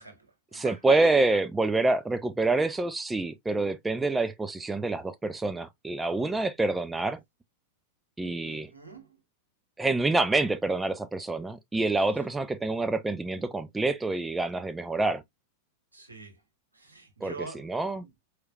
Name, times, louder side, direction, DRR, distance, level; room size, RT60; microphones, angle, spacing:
voice 1, 0.0-1.1 8.4-9.2 12.1-12.2 15.9-16.4 16.7-17.7 18.0-18.1, right 3 dB, 80° right, 1.6 m, -44 dB
voice 2, 0.5-7.2 8.2-8.7 9.8-15.2 17.2-17.3 17.6-18.0, right 2 dB, 10° right, 0.5 m, -27 dB
4.6 x 3.2 x 2.3 m
figure-of-eight pair, 90°, 0 cm